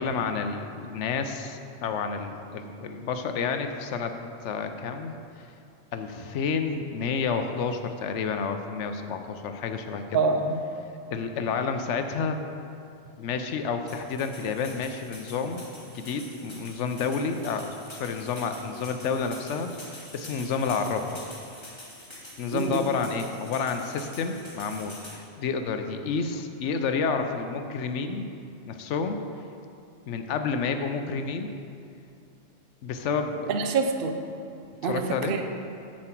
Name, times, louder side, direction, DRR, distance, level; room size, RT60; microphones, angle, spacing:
voice 1, 0.0-4.1 4.4-5.1 5.9-10.2 11.1-12.4 13.2-21.2 22.4-28.3 28.7-29.2 30.1-31.5 32.8-33.5 34.8-35.4, left 5 dB, 75° left, 7 dB, 0.9 m, -30 dB
voice 2, 10.1-10.6 22.5-22.8 33.5-34.2 34.8-35.4, right 4 dB, 55° right, 5 dB, 0.7 m, -26 dB
sound 1, 13.9-25.2, left 1 dB, 20° left, 1.7 m, -46 dB
7.6 x 7.3 x 4.4 m, 2.5 s
omnidirectional pair, 1.3 m